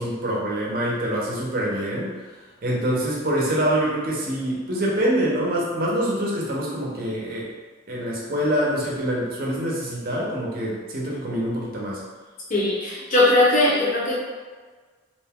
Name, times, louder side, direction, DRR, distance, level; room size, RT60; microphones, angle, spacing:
voice 1, 0.0-2.2 2.6-7.5 7.9-12.0, right 1 dB, 45° right, -4 dB, 0.6 m, -25 dB
voice 2, 12.5-14.1, left 2 dB, 40° left, -6 dB, 0.6 m, -19 dB
2.5 x 2.2 x 3.4 m, 1.4 s
head